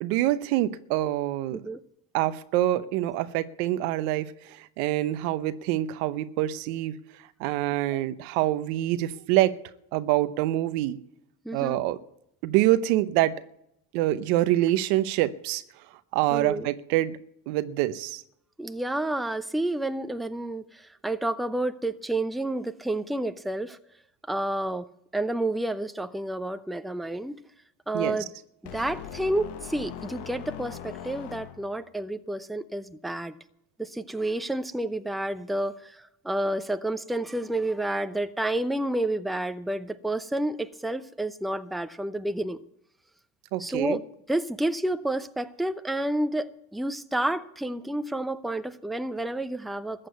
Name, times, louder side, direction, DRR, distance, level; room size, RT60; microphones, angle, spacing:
voice 1, 0.0-1.7 2.1-7.0 7.4-9.6 9.9-11.0 11.5-12.0 12.4-13.3 13.9-15.6 16.1-17.2 17.5-18.2 27.9-28.2 43.5-44.0, right 15 dB, 85° right, 0.9 m, -25 dB
voice 2, 11.4-11.8 16.3-16.7 18.6-23.8 24.3-24.9 25.1-27.4 27.9-28.3 28.6-33.4 33.8-42.6 43.6-50.1, right 1 dB, ahead, 0.7 m, -30 dB
sound 1, 28.7-31.9, left 10 dB, 60° left, 1.4 m, -40 dB
14.5 x 7.7 x 9.2 m
supercardioid pair, 85°, 44 cm